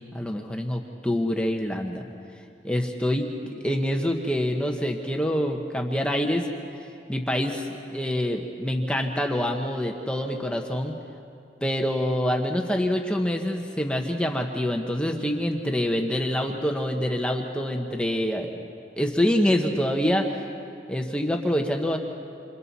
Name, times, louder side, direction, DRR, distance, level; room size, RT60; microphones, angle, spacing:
voice 1, 0.0-2.0 2.6-6.5 7.1-11.0 11.6-18.5 19.0-20.5 20.9-22.0, equal, 5° left, 2 dB, 1.0 m, -26 dB
27.5 x 27.5 x 4.2 m, 2.6 s
head